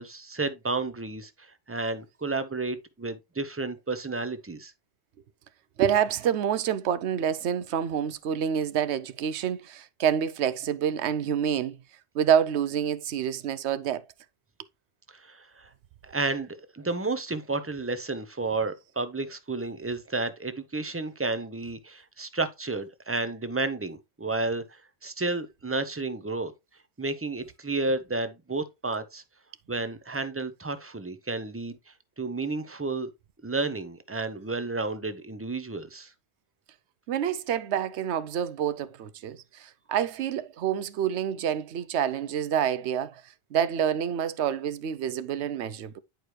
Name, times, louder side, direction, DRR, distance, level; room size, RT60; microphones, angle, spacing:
voice 1, 0.0-4.7 15.1-15.7 16.0-26.5 27.0-29.2 29.7-31.8 32.2-33.1 33.4-36.1, right 3 dB, 15° right, 0.5 m, -31 dB
voice 2, 5.8-11.8 12.1-14.0 37.1-43.2 43.5-46.0, right 9 dB, 85° right, 0.9 m, -27 dB
10.0 x 4.7 x 3.1 m
omnidirectional pair, 1.1 m